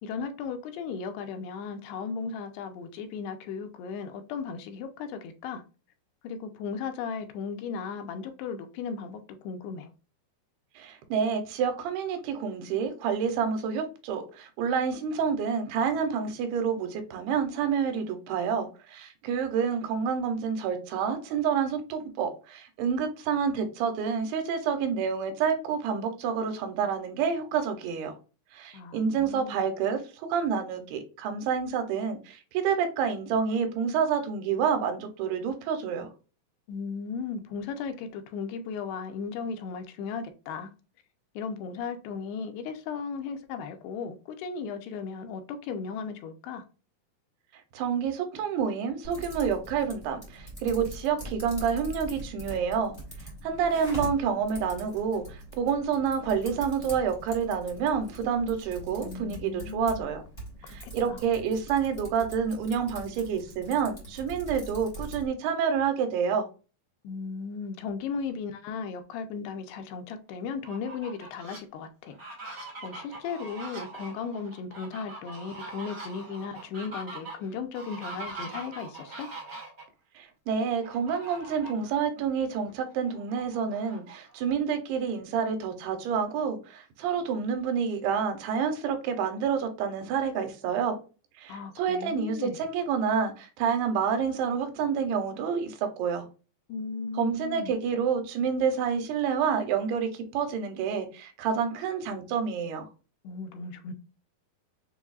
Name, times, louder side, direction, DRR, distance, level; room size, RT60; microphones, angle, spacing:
voice 1, 0.0-5.6 6.2-9.9 28.7-29.7 36.7-40.7 41.4-46.6 59.0-60.1 60.6-60.8 61.1-61.2 67.0-72.2 72.5-79.3 91.5-92.6 96.7-97.8 103.2-103.9, left 5 dB, 85° left, 2.7 m, -36 dB
voice 2, 10.8-28.1 28.5-36.1 47.7-52.9 53.4-60.2 60.7-66.5 80.2-91.0 91.4-96.3 97.2-102.9, right 6 dB, 85° right, 2.8 m, -28 dB
Typing, 49.0-65.3, right 1 dB, 35° left, 0.6 m, -42 dB
Fowl, 70.5-71.6 72.1-79.8 80.8-81.9 82.3-82.4 82.8-84.5, right 3 dB, 50° right, 0.7 m, -42 dB
6.8 x 2.6 x 2.3 m
omnidirectional pair, 4.7 m